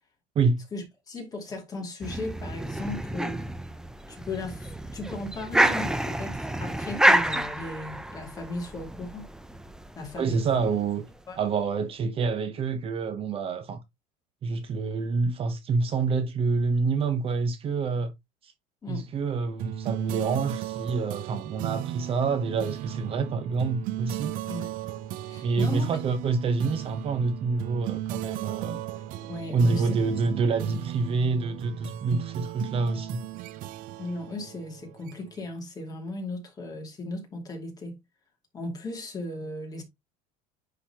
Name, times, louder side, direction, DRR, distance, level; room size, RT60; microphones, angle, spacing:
voice 1, 0.7-3.5 4.1-9.3 10.0-10.4 11.3-11.4 18.8-19.1 24.5-24.7 25.2-26.0 29.3-30.0 34.0-38.0 38.5-39.8, left 2 dB, 20° left, 2.5 m, -36 dB
sound 1, 2.0-11.1, right 1 dB, 5° right, 0.5 m, -28 dB
voice 2, 10.2-11.1 11.4-13.8 14.4-18.1 18.4-18.5 18.9-24.3 25.4-28.8 29.5-33.2, right 4 dB, 35° right, 0.9 m, -27 dB
sound 2, 19.6-35.5, right 13 dB, 55° right, 0.6 m, -35 dB
9.9 x 4.1 x 2.9 m
cardioid pair, 150°, 17 cm